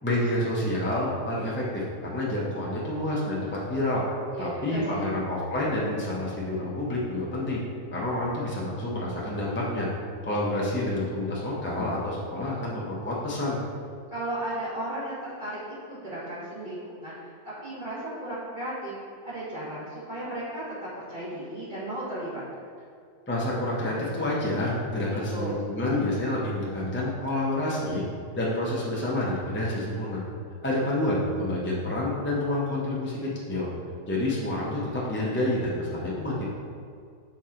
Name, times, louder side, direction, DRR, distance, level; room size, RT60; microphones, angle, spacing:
voice 1, 0.0-1.8 2.1-4.0 4.4-7.6 7.9-9.9 10.2-13.6 23.3-28.0 28.3-30.2 30.6-33.7 34.1-36.5, left 1 dB, 10° left, -6 dB, 0.5 m, -28 dB
voice 2, 4.3-5.2 14.1-15.6 15.9-17.3 17.6-18.9 19.2-22.4 25.3-25.6, right 1 dB, 30° right, -12 dB, 1.7 m, -35 dB
6.3 x 4.4 x 3.7 m, 2.2 s
omnidirectional pair, 1.9 m